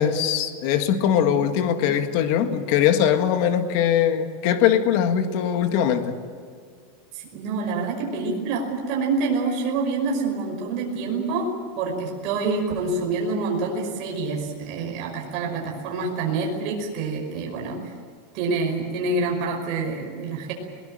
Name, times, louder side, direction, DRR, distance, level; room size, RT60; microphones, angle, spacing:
voice 1, 0.0-6.2, left 9 dB, 45° left, 8 dB, 1.7 m, -21 dB
voice 2, 1.2-1.9 7.1-17.9 18.3-20.5, right 3 dB, 35° right, 0 dB, 5.3 m, -27 dB
22.0 x 19.0 x 9.0 m, 2.1 s
supercardioid pair, 180°, 0 cm